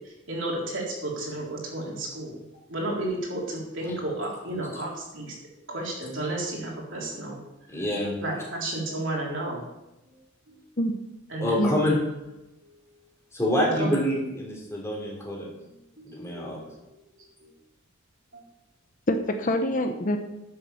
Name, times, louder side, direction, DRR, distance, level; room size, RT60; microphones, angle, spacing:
voice 1, 0.3-2.4 2.7-5.3 5.7-7.4 8.2-9.6 10.5-10.6 11.3-11.5 13.8-14.0 16.0-16.7 17.4-17.5 18.3-18.4, right 1 dB, 60° right, -3 dB, 3.8 m, -32 dB
voice 2, 7.7-8.2 11.4-12.0 13.3-15.5 16.0-16.6, left 1 dB, 15° left, -3 dB, 3.7 m, -27 dB
voice 3, 19.1-20.2, left 1 dB, 40° left, 6 dB, 0.9 m, -25 dB
11.0 x 7.6 x 7.0 m, 0.96 s
head